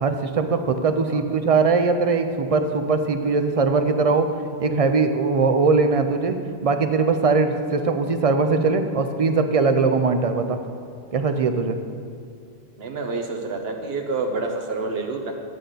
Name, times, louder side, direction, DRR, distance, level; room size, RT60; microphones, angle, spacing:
voice 1, 0.0-4.3 4.6-10.6 11.1-11.8, right 4 dB, 50° right, 8 dB, 0.5 m, -21 dB
voice 2, 12.8-15.4, right 3 dB, 70° right, 4 dB, 1.2 m, -28 dB
10.5 x 8.2 x 3.9 m, 2.4 s
omnidirectional pair, 1.1 m